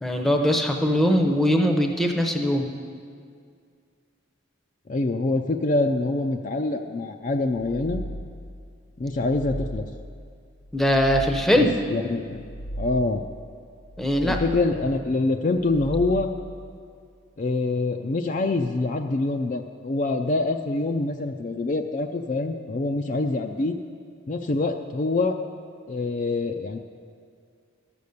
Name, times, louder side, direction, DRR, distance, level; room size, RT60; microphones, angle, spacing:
voice 1, 0.0-2.7 10.7-11.7 14.0-14.4, equal, ahead, 3 dB, 0.7 m, -21 dB
voice 2, 4.9-8.0 9.0-9.9 11.5-12.4 12.8-13.2 14.2-16.3 17.4-23.8 24.3-25.4 25.9-26.8, left 2 dB, 40° left, 5 dB, 0.4 m, -25 dB
sound 1, 7.5-8.6 9.0-10.2 10.6-11.7 12.2-13.3 13.8-14.9 15.5-16.6, equal, 70° left, 1.0 m, -36 dB
13.5 x 6.9 x 6.6 m, 2.2 s
head